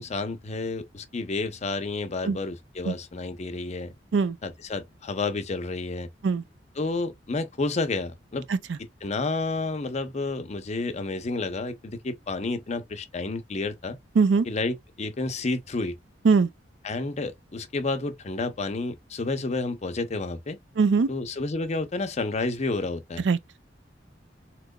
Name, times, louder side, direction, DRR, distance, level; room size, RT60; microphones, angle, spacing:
voice 1, 0.0-3.9 4.4-6.1 6.8-8.5 9.0-14.0 14.4-16.0 16.8-20.6 21.1-23.2, left 3 dB, 40° left, 0.6 m, -30 dB
voice 2, 14.2-14.5 16.2-16.5 20.8-21.1 23.2-23.6, right 4 dB, 75° right, 0.4 m, -21 dB
3.7 x 2.9 x 2.2 m
head